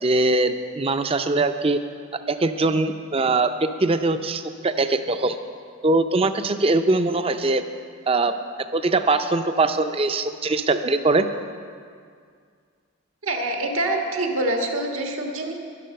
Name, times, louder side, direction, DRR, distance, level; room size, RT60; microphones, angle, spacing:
voice 1, 0.0-1.8 2.3-5.4 5.8-7.6 8.1-8.3 8.7-11.3, right 2 dB, 30° right, 9 dB, 0.5 m, -22 dB
voice 2, 13.2-15.6, right 1 dB, 80° right, 2 dB, 1.6 m, -25 dB
11.0 x 11.0 x 6.4 m, 2.1 s
head